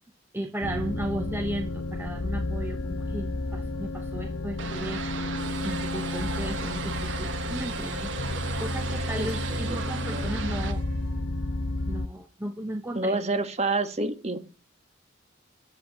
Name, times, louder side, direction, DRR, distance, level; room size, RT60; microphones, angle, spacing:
voice 1, 0.3-10.8 11.9-13.2, right 1 dB, 10° right, 5 dB, 0.9 m, -35 dB
sound 1, 0.6-12.1, left 2 dB, 80° left, 0.9 m, -32 dB
sound 2, 4.6-10.7, right 5 dB, 65° right, 1.6 m, -36 dB
Harmonica, 5.3-11.3, right 1 dB, 50° right, 1.8 m, -42 dB
voice 2, 9.2-10.3 12.9-14.4, right 2 dB, 30° right, 8 dB, 1.5 m, -29 dB
11.0 x 7.8 x 8.5 m, 0.35 s
head